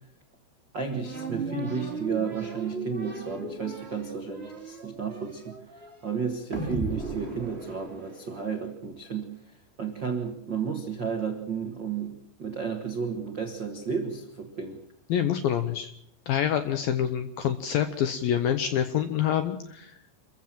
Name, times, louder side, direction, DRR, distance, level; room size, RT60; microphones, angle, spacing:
voice 1, 0.7-9.3 9.8-14.8, right 6 dB, 90° right, 4 dB, 1.0 m, -33 dB
sound 1, 1.0-8.5, right 4 dB, 15° right, 2.5 m, -36 dB
voice 2, 15.1-15.9 16.3-20.0, left 9 dB, 80° left, 9 dB, 2.1 m, -26 dB
26.5 x 15.0 x 7.6 m, 0.76 s
omnidirectional pair, 5.3 m